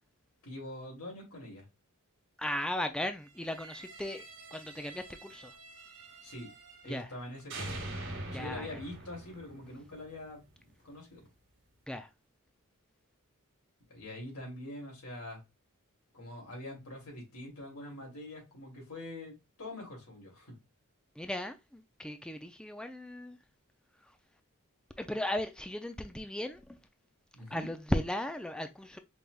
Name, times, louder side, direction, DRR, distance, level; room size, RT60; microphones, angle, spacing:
voice 1, 0.4-1.6 6.2-6.5 6.8-7.9 8.3-10.4 10.8-11.3 13.9-15.4 16.1-20.5 27.3-27.7, left 1 dB, 80° left, 2.8 m, -44 dB
voice 2, 2.4-5.5 6.9-7.1 8.3-8.8 11.9-12.1 21.2-23.4 24.0-24.2 25.0-26.8 27.5-29.0, left 1 dB, 5° left, 0.3 m, -36 dB
sound 1, 3.3-7.2 7.5-10.5, right 2 dB, 60° right, 1.5 m, -45 dB
5.2 x 3.4 x 2.3 m
head